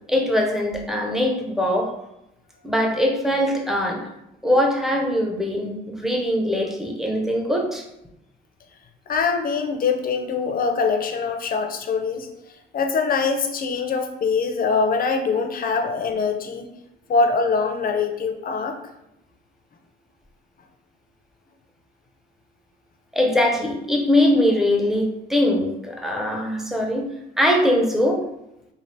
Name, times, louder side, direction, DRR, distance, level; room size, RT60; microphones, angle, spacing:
voice 1, 0.1-1.9 2.6-4.0 4.4-7.8 23.1-27.0 27.4-28.2, left 1 dB, ahead, 1 dB, 0.6 m, -21 dB
voice 2, 9.1-12.3 12.7-16.7 17.1-18.9, left 4 dB, 45° left, 5 dB, 0.5 m, -23 dB
3.2 x 2.4 x 2.7 m, 0.87 s
cardioid pair, 90°, 20 cm